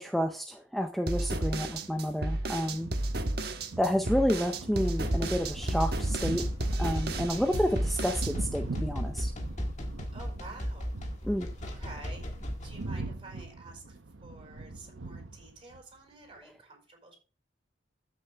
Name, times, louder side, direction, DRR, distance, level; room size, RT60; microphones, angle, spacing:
voice 1, 0.0-2.9 3.8-6.4 6.8-9.3 11.3-11.5, equal, ahead, 5 dB, 0.6 m, -30 dB
sound 1, 1.1-8.3, right 2 dB, 55° right, 1.2 m, -32 dB
sound 2, 1.5-15.8, right 3 dB, 80° right, 0.8 m, -43 dB
voice 2, 3.7-4.1 7.9-8.0 10.1-11.1 11.6-12.3 12.6-17.2, right 3 dB, 25° right, 2 dB, 5.0 m, -50 dB
sound 3, 4.7-12.9, equal, 40° left, 1.7 m, -36 dB
14.0 x 6.7 x 3.4 m, 0.36 s
head